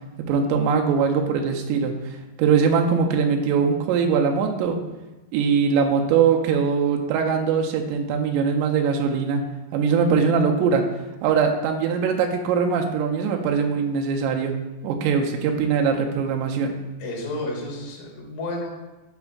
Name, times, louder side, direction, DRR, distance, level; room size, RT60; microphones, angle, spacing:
voice 1, 0.3-2.1 2.4-4.8 5.3-9.4 9.7-10.9 11.2-14.6 14.8-16.8, right 6 dB, 85° right, 3 dB, 2.8 m, -21 dB
voice 2, 17.0-18.7, left 1 dB, 70° left, -3 dB, 1.4 m, -31 dB
10.5 x 4.3 x 2.4 m, 1.1 s
omnidirectional pair, 5.0 m